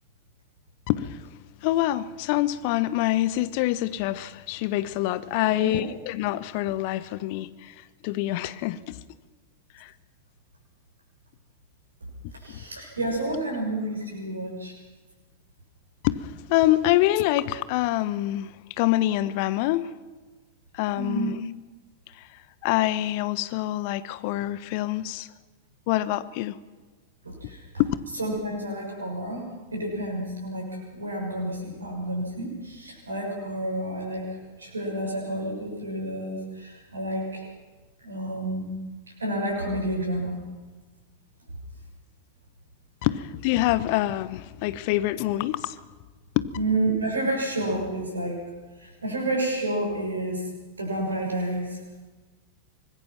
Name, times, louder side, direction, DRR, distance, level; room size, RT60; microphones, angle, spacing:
voice 1, 0.9-1.2 1.6-7.7 8.0-9.0 9.8-9.9 16.0-18.5 18.8-19.9 20.7-21.4 22.6-25.3 25.9-26.5 27.8-28.0 43.0-45.7 46.3-46.5, left 15 dB, 45° left, 1.2 m, -25 dB
voice 2, 5.4-5.8 12.4-14.7 20.9-21.3 27.2-27.6 28.2-29.4 29.7-34.3 34.6-37.4 38.0-38.7 39.2-40.4 46.5-48.4 48.8-50.5 50.8-51.8, right 1 dB, 75° right, 6.7 m, -30 dB
25.0 x 20.5 x 6.0 m
figure-of-eight pair, 90°, 0 cm